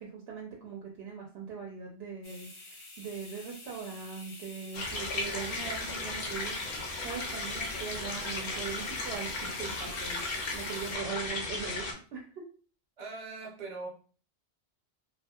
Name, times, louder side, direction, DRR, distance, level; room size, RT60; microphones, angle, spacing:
voice 1, 0.0-10.2 10.5-12.4, right 6 dB, 70° right, -1 dB, 0.8 m, -41 dB
sound 1, 2.2-11.0, left 2 dB, 40° left, 0.4 m, -49 dB
sound 2, 4.7-11.9, left 2 dB, 75° left, 0.9 m, -35 dB
voice 2, 13.0-13.9, right 3 dB, 40° right, -1 dB, 0.7 m, -40 dB
2.6 x 2.4 x 2.3 m, 0.39 s
omnidirectional pair, 1.1 m